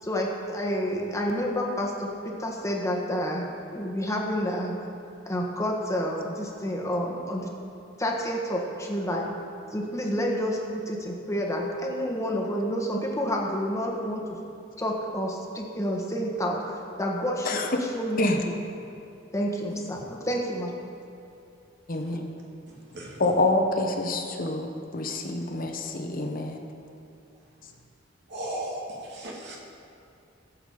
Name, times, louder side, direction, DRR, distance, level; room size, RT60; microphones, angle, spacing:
voice 1, 0.0-4.7 5.3-7.5 8.0-9.3 9.7-14.2 14.8-18.6 19.3-20.7, equal, 15° left, -1 dB, 1.5 m, -29 dB
voice 2, 21.9-22.3 23.2-26.6, left 2 dB, 45° left, 3 dB, 1.1 m, -27 dB
voice 3, 28.3-28.8 29.1-29.6, right 1 dB, 60° right, -3 dB, 2.5 m, -35 dB
18.0 x 7.6 x 5.0 m, 2.7 s
head